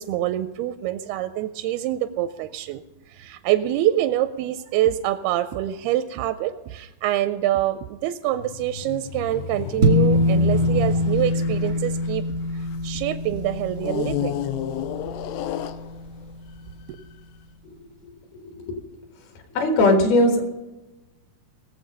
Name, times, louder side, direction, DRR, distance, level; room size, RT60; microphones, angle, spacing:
voice 1, 0.0-2.8 3.1-12.2 12.8-14.4, right 13 dB, 85° right, 11 dB, 2.2 m, -25 dB
sound 1, 8.3-13.1 13.8-16.3 17.0-17.1, left 9 dB, 85° left, 2.7 m, -32 dB
sound 2, 9.8-16.4, left 1 dB, 65° right, 0.7 m, -24 dB
voice 2, 19.6-20.4, left 1 dB, 70° left, 3 dB, 3.3 m, -17 dB
20.0 x 7.5 x 5.2 m, 1.1 s
omnidirectional pair, 4.8 m